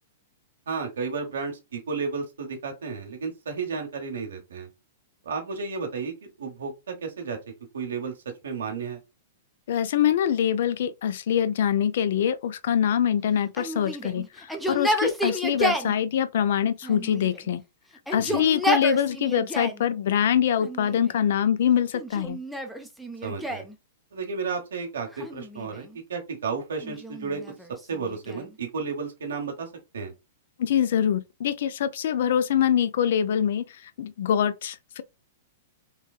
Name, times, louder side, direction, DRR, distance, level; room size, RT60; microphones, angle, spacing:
voice 1, 0.7-4.7 5.2-7.4 7.7-8.1 8.4-9.0 18.2-18.4 23.2-23.6 24.1-27.4 27.9-29.7 29.9-30.1, right 5 dB, 85° right, 1.0 m, -32 dB
voice 2, 9.7-17.6 18.1-22.4 30.6-35.0, left 9 dB, 65° left, 0.3 m, -24 dB
Yell, 13.6-15.9 16.8-17.6 18.0-19.8 20.6-21.2 21.9-23.7 25.1-26.0 26.8-28.5, equal, ahead, 0.5 m, -31 dB
3.2 x 2.2 x 2.3 m
hypercardioid pair, 130°, 0 cm